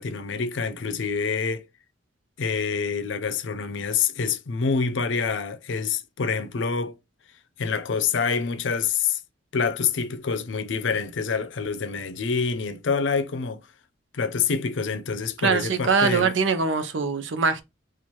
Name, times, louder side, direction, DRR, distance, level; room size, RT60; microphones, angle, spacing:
voice 1, 0.0-1.6 2.4-7.0 7.6-9.2 9.5-13.6 14.1-16.3, left 5 dB, 80° left, 0.5 m, -26 dB
voice 2, 15.4-17.6, right 5 dB, 85° right, 0.7 m, -22 dB
4.4 x 2.4 x 2.9 m
head